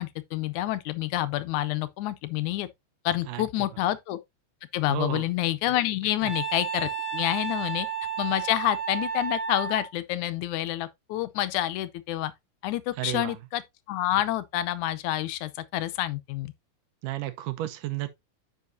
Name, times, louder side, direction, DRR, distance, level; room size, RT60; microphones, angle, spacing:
voice 1, 0.0-2.7 3.1-4.2 4.7-7.9 8.2-12.3 12.6-13.6 13.9-16.5, left 14 dB, 80° left, 2.0 m, -28 dB
voice 2, 3.2-3.8 4.9-5.3 6.2-6.3 13.0-13.4 17.0-18.1, right 14 dB, 85° right, 2.5 m, -33 dB
Wind instrument woodwind instrument, 6.2-9.9, right 6 dB, 15° left, 2.8 m, -32 dB
9.5 x 5.8 x 2.6 m
omnidirectional pair, 3.7 m